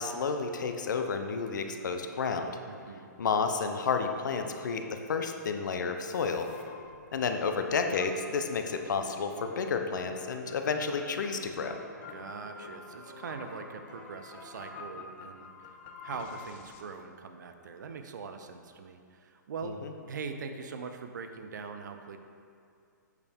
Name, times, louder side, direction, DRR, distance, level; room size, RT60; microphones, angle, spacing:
voice 1, 0.0-2.5 3.2-6.5 7.1-11.8 19.8-19.9, left 5 dB, 70° left, 6 dB, 0.8 m, -31 dB
voice 2, 2.7-3.1 12.1-15.8 16.0-19.8 20.1-22.2, right 5 dB, 70° right, 7 dB, 0.8 m, -42 dB
sound 1, 6.0-16.8, left 5 dB, 35° left, 0.6 m, -50 dB
sound 2, 8.8-14.8, left 2 dB, 20° left, 1.6 m, -52 dB
8.2 x 6.6 x 3.6 m, 2.4 s
hypercardioid pair, 150°, 10 cm